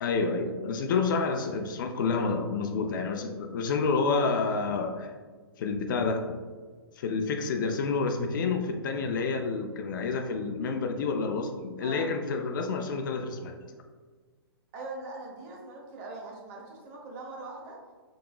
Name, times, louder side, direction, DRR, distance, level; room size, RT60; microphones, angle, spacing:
voice 1, 0.0-5.1 5.6-6.4 7.0-13.6, left 4 dB, 50° left, 5 dB, 0.4 m, -29 dB
voice 2, 11.8-12.1 14.7-17.8, right 2 dB, 35° right, -2 dB, 0.9 m, -41 dB
3.8 x 2.8 x 2.3 m, 1.5 s
hypercardioid pair, 130°, 13 cm